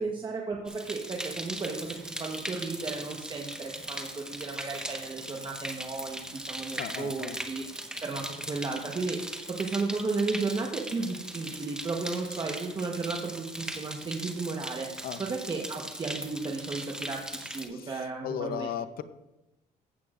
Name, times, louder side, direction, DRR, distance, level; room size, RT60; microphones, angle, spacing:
voice 1, 0.0-7.6 8.0-9.2 9.5-18.7, right 4 dB, 25° right, 0 dB, 1.1 m, -34 dB
sound 1, 0.7-17.7, right 1 dB, 5° right, 1.0 m, -39 dB
voice 2, 6.8-7.4 15.0-15.2 17.7-17.9 18.2-19.0, left 9 dB, 60° left, 12 dB, 0.7 m, -36 dB
15.0 x 8.4 x 2.5 m, 0.95 s
cardioid pair, 110°, 17 cm